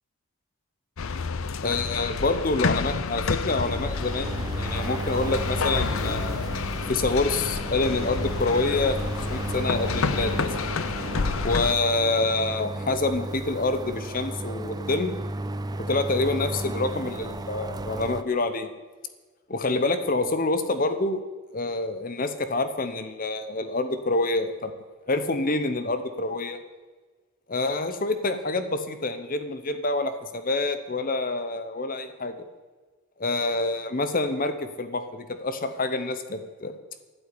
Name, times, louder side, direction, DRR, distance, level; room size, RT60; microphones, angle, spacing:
sound 1, 1.0-11.7, left 4 dB, 70° left, 0.7 m, -29 dB
voice 1, 1.6-6.4 6.9-10.7 11.4-15.2 15.9-18.7 19.5-21.2 21.5-24.7 25.1-26.6 27.5-32.3 33.2-36.7, left 2 dB, 40° left, 10 dB, 0.9 m, -27 dB
sound 2, 3.5-18.2, right 2 dB, 20° right, 0.4 m, -34 dB
12.5 x 8.5 x 9.8 m, 1.4 s
head